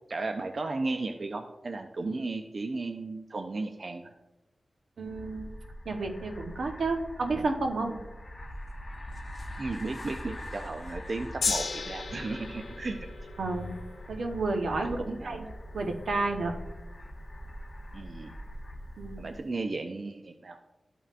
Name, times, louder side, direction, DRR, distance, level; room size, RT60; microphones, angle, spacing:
voice 1, 0.1-4.1 9.6-13.3 15.0-15.5 17.9-18.3 19.2-20.6, right 3 dB, 45° right, 5 dB, 0.4 m, -35 dB
sound 1, 5.0-19.5, equal, 25° left, 1.0 m, -43 dB
voice 2, 5.0-5.5 5.8-7.9 13.4-13.7 14.1-15.0 15.2-15.5 15.7-16.5 19.0-19.3, right 3 dB, 80° right, 4 dB, 0.9 m, -31 dB
Gong, 11.4-17.8 18.5-18.6, left 4 dB, 85° left, 0.9 m, -38 dB
12.5 x 5.6 x 2.4 m, 1.0 s
wide cardioid pair, 125°, 0 cm